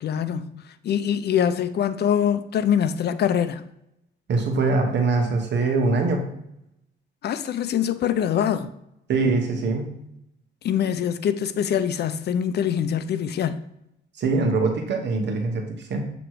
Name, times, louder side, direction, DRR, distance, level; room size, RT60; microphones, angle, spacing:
voice 1, 0.0-3.6 7.2-8.7 10.6-13.6, left 9 dB, 55° left, 0.5 m, -24 dB
voice 2, 4.3-6.3 9.1-9.9 14.2-16.1, right 3 dB, 65° right, 1.1 m, -23 dB
7.4 x 3.0 x 4.6 m
cardioid pair, 90°, 20 cm